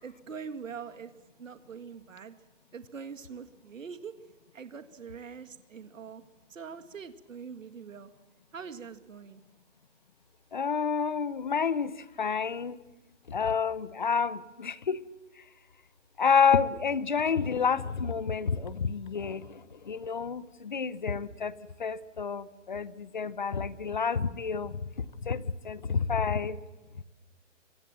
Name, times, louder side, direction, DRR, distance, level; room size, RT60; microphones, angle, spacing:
voice 1, 0.0-1.1 1.4-2.3 2.7-4.1 4.5-6.2 6.5-8.1 8.5-9.4, right 6 dB, 85° right, 10 dB, 2.0 m, -43 dB
voice 2, 10.5-11.9 12.2-12.8 13.3-15.0 16.2-19.4 19.9-21.5 21.8-24.7 25.2-26.6, left 6 dB, 40° left, 18 dB, 0.8 m, -29 dB
24.5 x 24.5 x 7.5 m, 1.1 s
hypercardioid pair, 180°, 38 cm